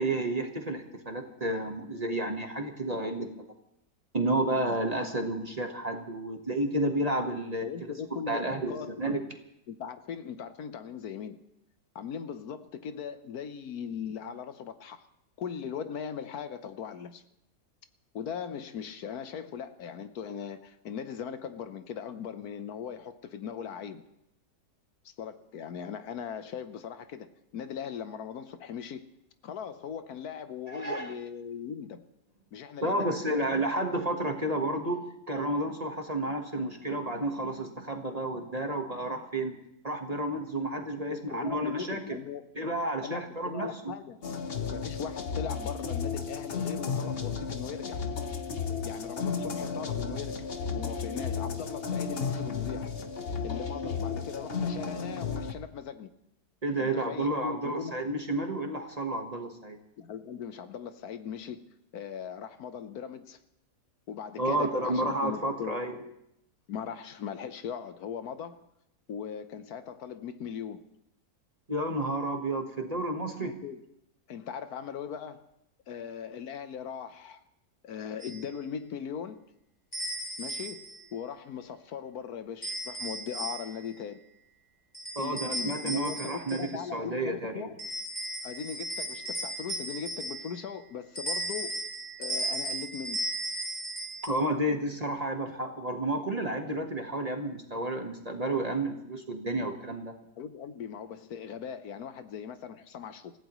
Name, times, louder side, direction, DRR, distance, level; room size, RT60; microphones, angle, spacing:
voice 1, 0.0-3.3 4.1-7.9 8.3-9.2 30.7-31.1 32.8-39.5 39.8-42.0 42.5-43.9 56.6-59.8 64.4-66.0 71.7-73.5 85.1-87.7 94.2-100.1, right 1 dB, 25° right, 1.3 m, -31 dB
voice 2, 7.6-9.2 9.7-11.4 11.9-15.1 15.4-17.2 18.1-24.0 25.0-29.1 29.4-32.1 32.5-33.3 41.1-42.4 43.0-44.2 44.7-48.0 48.8-52.9 53.4-56.1 56.8-57.9 60.0-61.7 61.9-63.4 64.1-65.8 66.7-68.6 69.1-70.8 73.4-73.8 74.3-75.5 75.9-77.4 77.8-79.4 80.4-84.2 85.2-87.8 88.4-91.8 92.2-93.2 100.4-103.3, left 7 dB, 70° left, 1.3 m, -39 dB
sound 1, 44.2-55.5, left 5 dB, 40° left, 1.1 m, -33 dB
sound 2, 78.2-78.4 79.9-81.0 82.6-83.9 84.9-86.7 87.8-90.7 91.2-94.3, right 1 dB, 25° left, 5.1 m, -36 dB
27.5 x 15.5 x 3.1 m
omnidirectional pair, 1.7 m